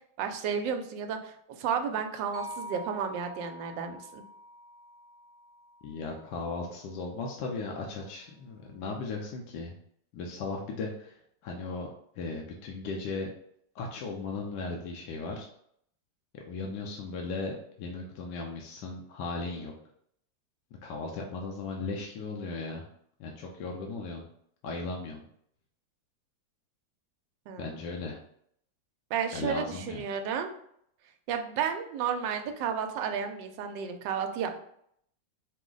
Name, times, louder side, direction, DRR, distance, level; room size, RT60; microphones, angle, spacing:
voice 1, 0.2-4.2 27.5-27.7 29.1-30.5 31.3-34.6, right 7 dB, 75° right, 6 dB, 1.2 m, -32 dB
sound 1, 2.3-6.5, equal, 10° left, 0.5 m, -46 dB
voice 2, 5.8-9.8 10.1-11.9 12.2-13.3 13.7-15.5 16.3-19.7 20.8-22.8 23.2-24.3 24.6-25.2 27.6-28.2 29.3-30.1, left 3 dB, 70° left, 0 dB, 1.2 m, -37 dB
4.9 x 2.0 x 3.8 m, 0.69 s
omnidirectional pair, 2.1 m